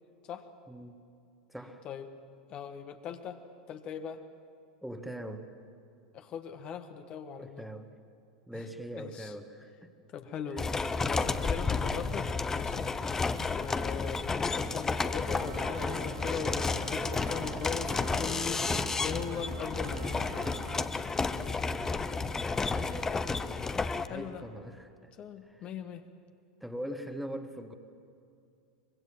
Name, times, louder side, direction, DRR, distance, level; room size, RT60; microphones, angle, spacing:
voice 1, 0.7-1.0 1.5-1.8 4.8-5.5 7.4-7.9 8.5-9.9 10.5-10.8 11.2-11.4 13.1-13.6 22.5-23.3 24.0-25.1 25.5-25.7 26.6-27.7, equal, ahead, 7 dB, 1.6 m, -42 dB
voice 2, 2.5-3.4 3.7-4.2 6.1-7.7 8.5-8.6 9.0-9.3 10.1-13.2 13.5-18.6 19.0-20.5 24.0-24.4 25.2-26.1, left 7 dB, 35° left, 7 dB, 1.4 m, -40 dB
sound 1, 10.6-24.1, left 4 dB, 15° left, 0.9 m, -32 dB
sound 2, 15.3-20.9, right 14 dB, 50° right, 0.7 m, -46 dB
24.5 x 22.5 x 7.4 m, 2.5 s
figure-of-eight pair, 85°, 3 cm